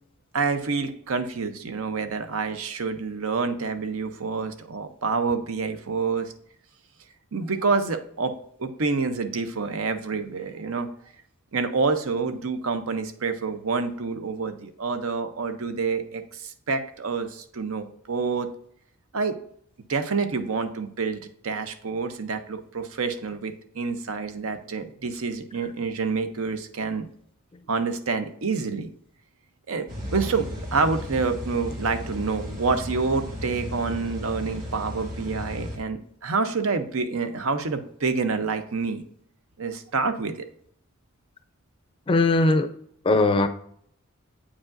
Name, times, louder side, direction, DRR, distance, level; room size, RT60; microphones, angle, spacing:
voice 1, 0.3-6.3 7.3-8.3 8.6-10.9 11.5-18.5 19.1-19.4 19.9-27.1 27.7-28.9 29.7-39.0 39.6-40.5, right 4 dB, 75° right, 9 dB, 0.7 m, -27 dB
sound 1, 29.9-35.8, left 1 dB, 40° right, 1.8 m, -35 dB
voice 2, 42.1-42.7 43.0-43.5, left 2 dB, 25° left, 9 dB, 0.4 m, -19 dB
8.4 x 4.9 x 2.5 m, 0.65 s
head